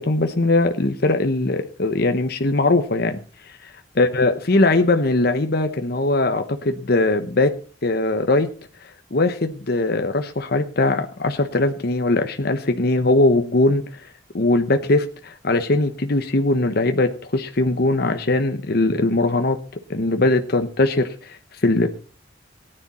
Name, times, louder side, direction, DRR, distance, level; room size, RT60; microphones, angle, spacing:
voice 1, 0.0-3.6 4.0-7.5 7.8-8.5 8.8-14.1 14.3-19.6 19.9-21.9, left 2 dB, 55° left, 7 dB, 1.0 m, -20 dB
18.5 x 10.0 x 4.3 m, 0.38 s
head